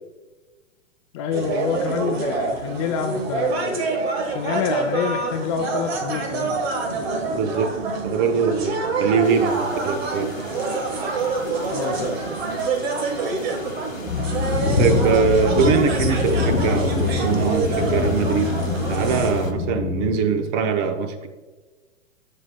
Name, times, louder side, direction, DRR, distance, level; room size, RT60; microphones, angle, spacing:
voice 1, 1.1-3.9 4.3-6.6 11.7-12.2, left 6 dB, 25° left, 5 dB, 0.4 m, -27 dB
sound 1, 1.3-19.3, right 3 dB, 50° right, 1.5 m, -26 dB
voice 2, 7.3-7.7 8.0-10.3 14.8-18.5 18.9-21.3, right 6 dB, 30° right, 7 dB, 0.7 m, -22 dB
sound 2, 9.2-19.5, left 3 dB, 90° left, 0.9 m, -29 dB
sound 3, 14.0-20.1, left 6 dB, 40° left, 1.6 m, -27 dB
13.0 x 5.4 x 2.2 m, 1.2 s
figure-of-eight pair, 110°, 38 cm